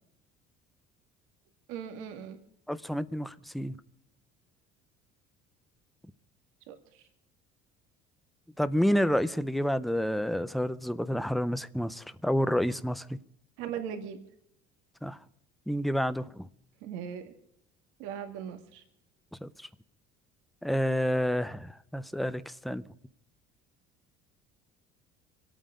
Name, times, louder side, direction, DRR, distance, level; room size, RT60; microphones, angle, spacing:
voice 1, 1.7-2.4 6.7-7.0 13.6-14.2 16.8-17.3 18.0-18.8, right 8 dB, 80° right, 2.1 m, -39 dB
voice 2, 2.7-3.8 8.6-13.2 15.0-15.2 15.7-16.5 19.4-19.5 20.6-22.8, equal, ahead, 0.5 m, -29 dB
26.5 x 9.1 x 5.0 m
cardioid pair, 170°, 20 cm